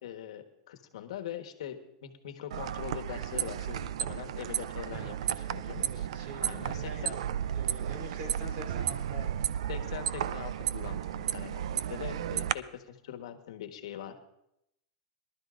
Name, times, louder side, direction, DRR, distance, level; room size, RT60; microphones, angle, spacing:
voice 1, 0.0-6.1 6.4-7.1 9.7-14.2, left 10 dB, 75° left, 7 dB, 1.3 m, -42 dB
sound 1, 2.5-12.5, right 10 dB, 75° right, 0.4 m, -33 dB
voice 2, 5.8-7.1 7.5-9.6, right 1 dB, 45° right, 2 dB, 3.1 m, -45 dB
22.5 x 12.0 x 2.5 m, 0.82 s
supercardioid pair, 155°, 3 cm